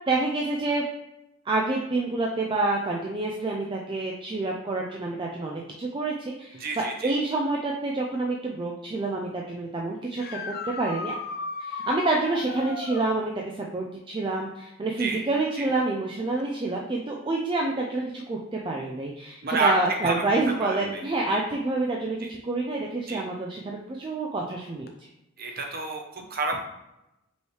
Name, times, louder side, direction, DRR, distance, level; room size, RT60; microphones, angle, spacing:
voice 1, 0.1-0.8 1.5-11.2 11.6-25.1, right 2 dB, 20° right, -1 dB, 0.3 m, -28 dB
voice 2, 6.6-7.1 15.0-15.2 15.6-15.7 19.4-19.7 20.0-20.2 20.6-21.0 21.3-21.4 22.2-22.3 23.1-23.2 25.4-26.6, right 3 dB, 40° right, 2 dB, 0.7 m, -29 dB
sound 1, 10.1-13.1 16.4-16.5 18.5-18.6 24.9-25.0, left 4 dB, 45° left, 0.5 m, -35 dB
5.3 x 3.1 x 3.2 m, 0.91 s
head